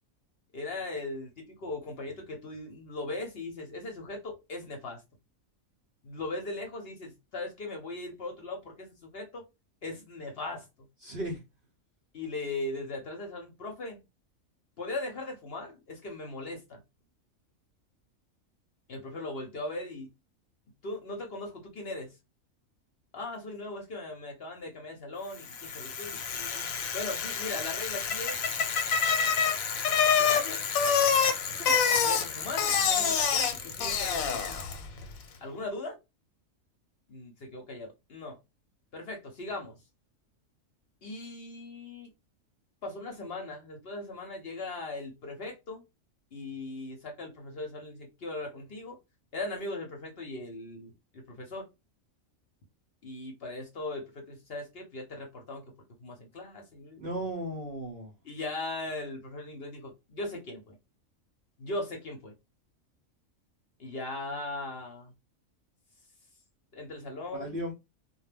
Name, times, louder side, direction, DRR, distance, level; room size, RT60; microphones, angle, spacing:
voice 1, 0.5-5.0 6.0-9.4 9.8-10.7 12.1-14.0 14.8-16.8 18.9-20.1 20.8-22.1 23.1-26.7 26.9-28.4 30.2-30.6 32.0-34.4 35.4-36.0 37.1-38.4 38.9-39.8 41.0-42.1 42.8-45.8 46.3-49.0 49.3-51.7 53.0-55.6 56.0-57.1 58.2-60.8 61.6-62.3 63.8-65.1 66.7-67.5, left 2 dB, 55° left, 0.8 m, -39 dB
voice 2, 11.0-11.4 31.4-31.8 57.0-58.1 67.3-67.7, right 1 dB, 55° right, 0.6 m, -36 dB
Bicycle, 25.4-34.9, left 6 dB, 90° left, 1.0 m, -27 dB
2.2 x 2.1 x 3.2 m
omnidirectional pair, 1.4 m